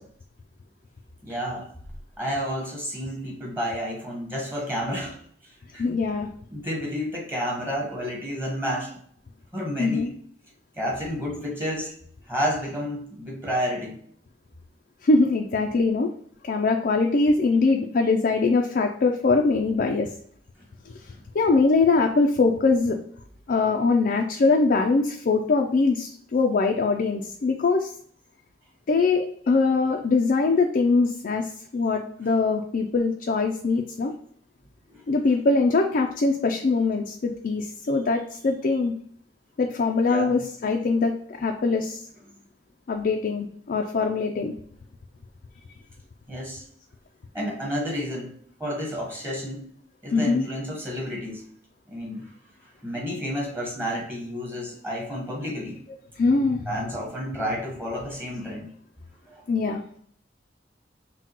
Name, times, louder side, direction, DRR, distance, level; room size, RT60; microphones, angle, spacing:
voice 1, 1.2-1.7 2.2-5.2 5.4-6.0 6.5-9.0 9.5-10.1 10.8-11.9 12.3-14.0 34.9-35.0 40.1-40.4 46.3-46.7 47.3-49.7 50.0-51.4 51.9-52.3 52.8-55.8 56.7-58.7 59.3-59.4, equal, 15° right, -2 dB, 1.2 m, -30 dB
voice 2, 5.8-6.3 9.8-10.1 15.0-16.1 16.4-20.1 21.3-23.0 23.5-27.9 28.9-34.1 35.1-38.9 39.6-42.0 42.9-44.5 50.1-50.5 56.2-56.7 57.5-57.6 59.5-59.8, left 3 dB, 55° left, 3 dB, 0.4 m, -22 dB
5.8 x 2.2 x 2.9 m, 0.62 s
head